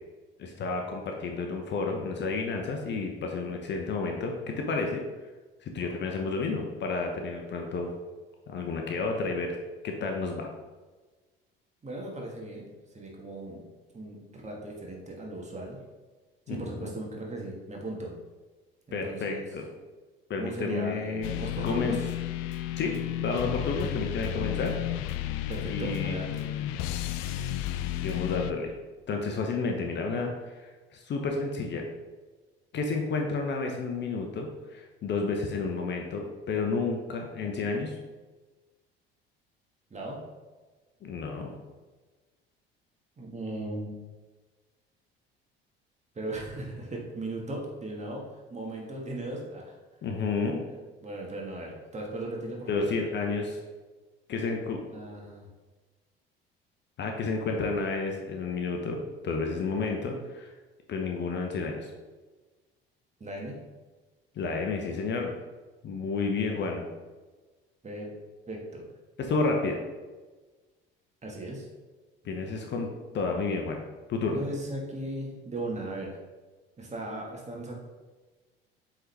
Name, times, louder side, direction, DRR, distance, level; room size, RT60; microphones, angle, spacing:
voice 1, 0.4-5.0 5.6-7.9 8.5-9.6 9.8-10.5 16.5-16.9 18.9-19.7 20.3-21.3 21.6-22.0 22.8-23.0 23.2-24.8 25.7-26.2 28.0-28.7 29.1-31.8 32.7-38.0 41.0-41.5 50.0-50.6 52.7-53.6 54.3-54.8 57.0-60.5 60.9-61.9 64.4-65.3 65.8-66.8 69.2-69.8 72.2-72.9 73.1-73.8 74.1-74.4, left 4 dB, 40° left, 2 dB, 0.9 m, -31 dB
voice 2, 11.8-13.6 13.9-15.8 16.5-18.1 18.9-19.4 20.4-22.1 25.5-26.4 39.9-40.2 43.2-43.9 46.1-48.2 48.5-49.7 51.0-52.9 54.9-55.5 57.4-57.6 63.2-63.5 66.4-66.6 67.8-68.1 68.5-68.8 71.2-71.7 74.2-76.2 76.8-77.7, right 1 dB, 25° right, -1 dB, 1.7 m, -37 dB
sound 1, 21.2-28.5, left 13 dB, 55° left, 0.4 m, -32 dB
7.8 x 3.8 x 3.4 m, 1.3 s
figure-of-eight pair, 60°, 29 cm